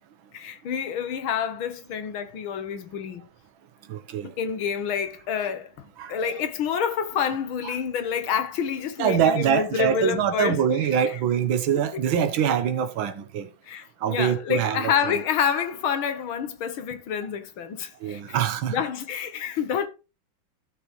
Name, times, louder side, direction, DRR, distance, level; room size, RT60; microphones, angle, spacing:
voice 1, 0.3-3.3 4.2-5.7 6.1-10.6 13.7-18.4 18.7-19.9, left 7 dB, 80° left, 1.9 m, -28 dB
voice 2, 3.9-4.3 6.0-6.3 7.6-7.7 9.0-13.5 14.0-15.2 18.0-18.8, right 8 dB, 75° right, 1.8 m, -24 dB
14.0 x 6.5 x 3.1 m
omnidirectional pair, 2.2 m